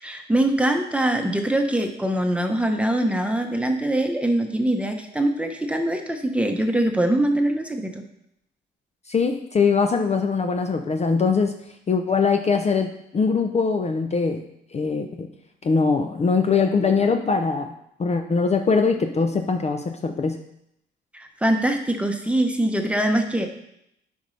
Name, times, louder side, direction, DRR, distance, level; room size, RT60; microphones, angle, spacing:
voice 1, 0.0-8.0 21.1-23.5, right 1 dB, 5° right, 4 dB, 1.0 m, -23 dB
voice 2, 9.1-11.6 11.9-14.4 14.7-15.3 15.6-17.7 18.0-20.4, left 5 dB, 35° left, 6 dB, 0.6 m, -22 dB
10.0 x 5.3 x 3.3 m, 0.78 s
cardioid pair, 90°, 20 cm